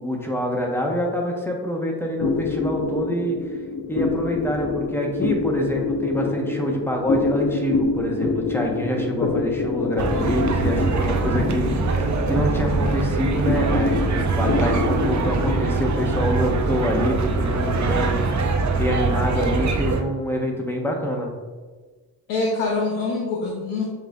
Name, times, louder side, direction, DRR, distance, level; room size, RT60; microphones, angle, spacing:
voice 1, 0.0-3.4 3.9-11.7 12.0-18.2 18.5-21.3, equal, 5° left, 0 dB, 0.9 m, -26 dB
sound 1, 2.2-21.0, left 4 dB, 35° left, 0.5 m, -27 dB
voice 2, 9.1-9.5 22.3-23.8, left 3 dB, 85° left, -2 dB, 0.7 m, -25 dB
sound 2, 10.0-20.0, right 4 dB, 40° right, 0.6 m, -23 dB
7.4 x 2.5 x 2.3 m, 1.4 s
supercardioid pair, 50°, 44 cm